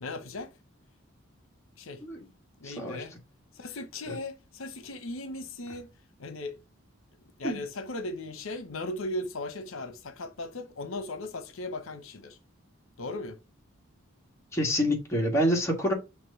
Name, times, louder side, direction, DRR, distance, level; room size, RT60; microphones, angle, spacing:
voice 1, 0.0-0.5 1.8-2.0 2.6-3.2 3.5-5.9 6.2-6.6 7.4-12.4 13.0-13.4, left 2 dB, 75° left, 0.8 m, -37 dB
voice 2, 2.6-3.0 4.1-4.2 7.4-7.6 14.5-15.9, equal, 15° left, 1.6 m, -27 dB
6.0 x 3.0 x 5.5 m
head